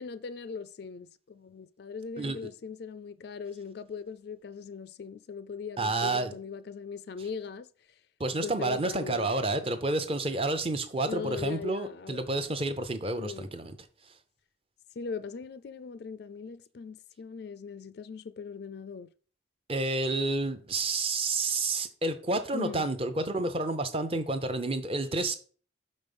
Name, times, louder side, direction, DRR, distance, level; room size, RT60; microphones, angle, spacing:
voice 1, 0.0-7.7 8.4-9.3 11.1-12.2 13.2-13.5 15.0-19.1 22.5-22.8, left 5 dB, 55° left, 0.3 m, -40 dB
voice 2, 5.8-6.4 8.2-13.8 19.7-25.3, right 2 dB, 30° right, 0.7 m, -30 dB
6.2 x 5.3 x 5.3 m
head